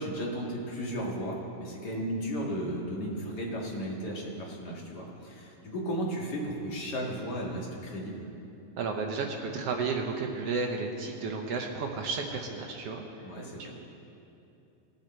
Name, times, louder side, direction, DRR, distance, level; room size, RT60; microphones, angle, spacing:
voice 1, 0.0-8.3 13.2-13.7, equal, 40° left, -2 dB, 1.9 m, -35 dB
voice 2, 8.8-13.0, right 4 dB, 70° right, 2 dB, 1.5 m, -32 dB
18.5 x 8.1 x 4.4 m, 2.8 s
omnidirectional pair, 3.5 m